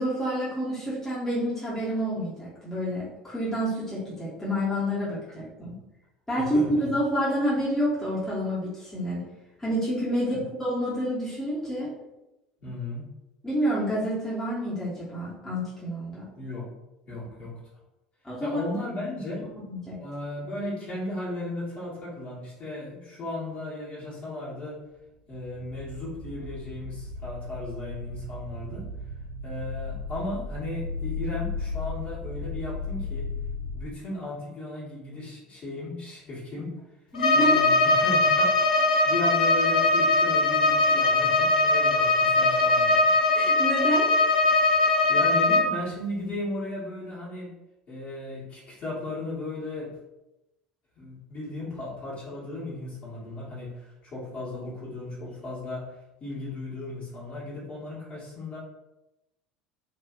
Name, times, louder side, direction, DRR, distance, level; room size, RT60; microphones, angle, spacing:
voice 1, 0.0-5.7 6.3-9.2 9.6-11.9 13.4-16.2 18.2-18.6 19.7-20.0 37.1-37.6 43.3-44.1, equal, 10° left, -9 dB, 1.1 m, -28 dB
voice 2, 6.4-6.9 10.1-10.4 12.6-13.1 16.3-16.7 17.0-17.6 18.4-19.5 20.0-24.8 25.3-28.9 29.4-33.3 33.7-36.8 37.3-43.1 45.1-47.5 47.9-49.9 50.9-55.9 56.2-58.6, left 2 dB, 40° left, -7 dB, 1.5 m, -35 dB
sound 1, 25.4-33.8, left 3 dB, 40° right, 0.5 m, -35 dB
Bowed string instrument, 37.1-45.7, left 2 dB, 80° left, 0.3 m, -21 dB
3.0 x 2.6 x 2.4 m, 0.96 s
figure-of-eight pair, 70°, 4 cm